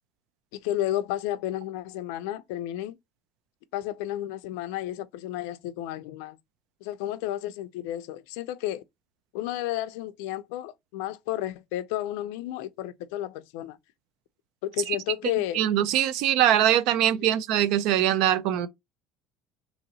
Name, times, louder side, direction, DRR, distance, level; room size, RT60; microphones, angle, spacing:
voice 1, 0.5-3.0 3.7-6.4 6.8-8.8 9.3-13.8 14.6-15.6 17.2-17.3, left 13 dB, 90° left, 0.4 m, -32 dB
voice 2, 15.5-18.7, right 11 dB, 60° right, 0.4 m, -22 dB
2.9 x 2.8 x 4.0 m
cardioid pair, 165°, 0 cm